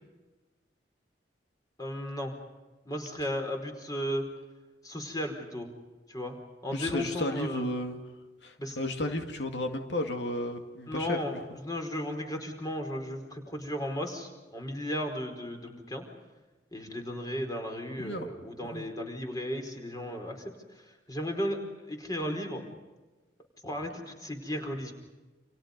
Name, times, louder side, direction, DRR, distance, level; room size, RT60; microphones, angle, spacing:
voice 1, 1.8-2.3 2.8-4.3 4.8-5.7 6.1-6.4 6.6-7.7 8.6-8.8 10.9-16.1 16.7-21.6 21.9-22.7 23.6-24.9, equal, 20° left, 4 dB, 4.9 m, -35 dB
voice 2, 6.7-8.0 8.4-11.2 18.0-18.3 18.7-18.9, left 1 dB, 90° left, 5 dB, 2.3 m, -33 dB
30.0 x 28.0 x 5.4 m, 1.2 s
head